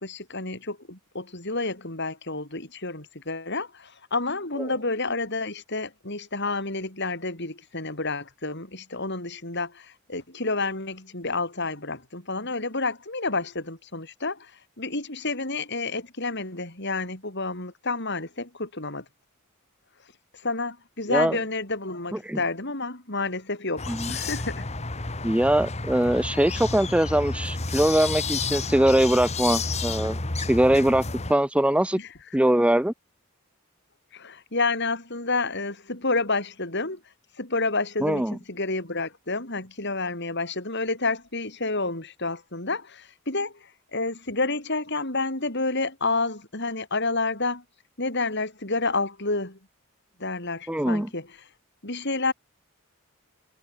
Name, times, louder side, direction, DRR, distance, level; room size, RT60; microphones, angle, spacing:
voice 1, 0.0-14.5 14.8-19.0 20.4-24.7 32.0-32.1 34.1-37.0 37.4-43.5 43.9-47.6 48.0-49.6 50.2-51.3 51.8-52.3, left 3 dB, 55° left, 6.6 m, -29 dB
sound 1, 23.8-31.3, left 3 dB, 30° left, 1.8 m, -31 dB
voice 2, 25.2-30.2 30.5-31.0 31.3-32.0 32.3-32.9 38.0-38.4 50.7-51.1, right 1 dB, 5° right, 0.5 m, -22 dB
head